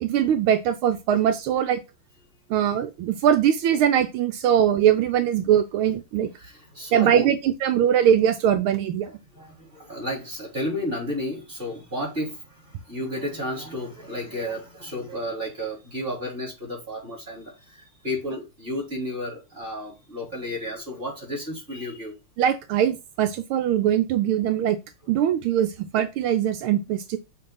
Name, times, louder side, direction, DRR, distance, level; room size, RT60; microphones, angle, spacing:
voice 1, 0.0-1.8 2.5-6.3 6.9-9.1 22.4-24.8 25.1-27.2, right 9 dB, 85° right, 1.5 m, -21 dB
voice 2, 6.4-7.4 9.0-22.1, left 1 dB, 25° right, 3.9 m, -32 dB
6.8 x 3.3 x 5.4 m
omnidirectional pair, 2.3 m